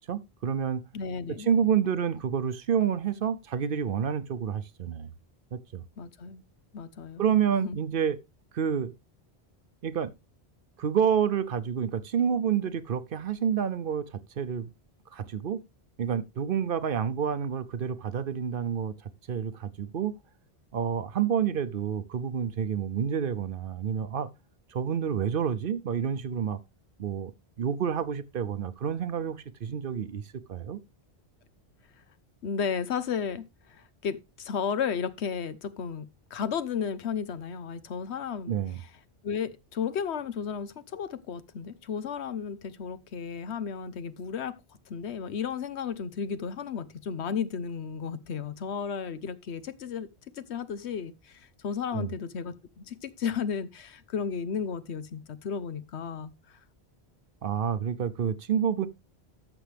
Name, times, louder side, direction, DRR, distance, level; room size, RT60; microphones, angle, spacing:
voice 1, 0.1-0.8 1.4-5.1 5.5-5.8 7.2-8.2 8.5-8.9 9.8-10.1 10.8-14.7 15.1-15.6 16.0-18.9 19.3-20.1 20.7-24.3 24.7-26.6 27.0-27.3 27.6-30.2 30.5-30.8 38.5-38.8 51.9-52.1 57.4-58.9, right 8 dB, 60° right, 0.8 m, -28 dB
voice 2, 0.9-1.5 6.0-6.4 6.7-7.8 32.4-38.5 39.2-44.6 44.9-50.1 50.4-56.3, left 6 dB, 85° left, 1.1 m, -33 dB
13.5 x 6.2 x 3.3 m
omnidirectional pair, 1.1 m